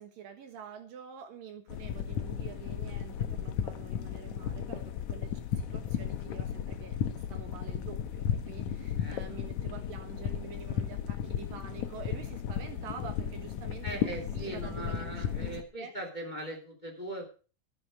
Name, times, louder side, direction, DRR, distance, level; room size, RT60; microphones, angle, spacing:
voice 1, 0.0-7.0 7.3-15.9, right 7 dB, 70° right, 6 dB, 2.9 m, -47 dB
sound 1, 1.7-15.6, left 9 dB, 70° left, 1.8 m, -35 dB
voice 2, 8.9-9.4 13.8-17.2, right 1 dB, 15° left, 1 dB, 2.7 m, -40 dB
13.0 x 7.9 x 6.3 m, 0.37 s
omnidirectional pair, 4.4 m